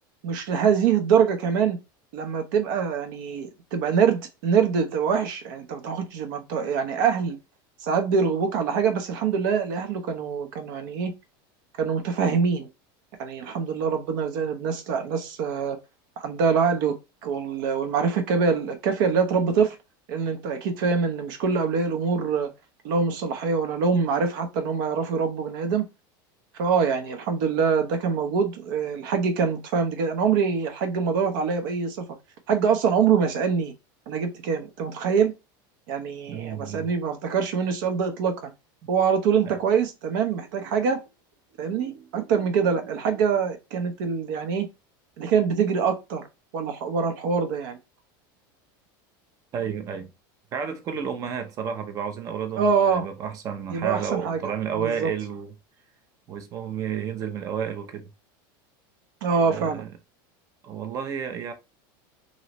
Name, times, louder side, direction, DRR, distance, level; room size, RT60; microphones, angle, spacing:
voice 1, 0.2-1.8 2.1-7.4 7.8-11.1 11.8-12.7 13.2-15.8 16.2-19.8 20.1-22.5 22.8-25.8 26.6-32.1 32.5-33.7 34.1-35.3 35.9-38.5 38.9-41.0 41.6-44.7 45.2-46.3 46.5-47.8 52.6-53.1 53.7-55.1 59.2-59.8, right 6 dB, 70° right, 0.8 m, -24 dB
voice 2, 36.3-36.9 39.5-39.6 49.5-50.1 50.5-55.5 56.3-58.1 59.4-59.9 60.6-61.5, right 7 dB, 30° right, 0.6 m, -31 dB
3.1 x 2.8 x 3.0 m
supercardioid pair, 160°, 11 cm